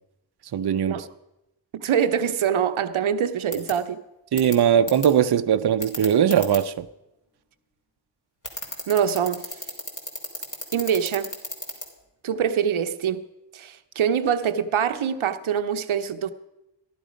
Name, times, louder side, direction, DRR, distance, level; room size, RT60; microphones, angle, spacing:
voice 1, 0.5-1.0 4.3-6.9, right 9 dB, 55° right, 0.6 m, -20 dB
voice 2, 1.7-4.0 8.9-9.6 10.7-11.3 12.2-13.2 13.5-16.3, right 8 dB, 90° right, 0.8 m, -24 dB
sound 1, 3.5-3.7 4.4-4.5 4.9-5.1 5.8-6.6 8.4-11.9, left 1 dB, 40° left, 3.2 m, -32 dB
15.0 x 11.5 x 5.1 m
cardioid pair, 55°, 47 cm